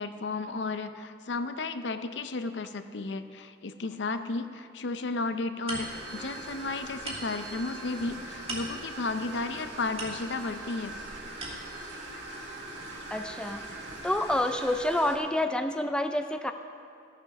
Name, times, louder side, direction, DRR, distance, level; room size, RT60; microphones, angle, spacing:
voice 1, 0.0-11.0, left 3 dB, 70° left, 10 dB, 0.6 m, -33 dB
sound 1, 5.7-10.7 11.1-12.0, right 2 dB, 30° right, 1.8 m, -42 dB
sound 2, 5.7-15.2, right 1 dB, 70° right, 1.9 m, -41 dB
voice 2, 13.1-13.7 14.0-16.5, left 1 dB, 5° left, 7 dB, 0.3 m, -28 dB
15.0 x 6.9 x 5.9 m, 2.4 s
head